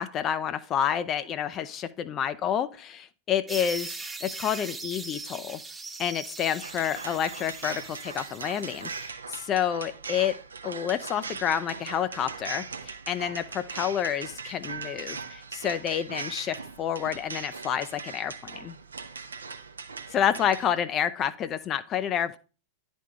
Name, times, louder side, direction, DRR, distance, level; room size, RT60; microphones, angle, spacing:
voice 1, 0.0-3.9 4.2-5.6 6.0-10.4 10.6-18.7 20.1-22.4, left 9 dB, 30° left, 12 dB, 0.4 m, -29 dB
sound 1, 3.5-9.1, right 3 dB, 10° right, 0.6 m, -40 dB
sound 2, 6.6-20.7, right 5 dB, 75° right, 0.5 m, -40 dB
10.0 x 3.5 x 5.0 m, 0.36 s
figure-of-eight pair, 90°, 0 cm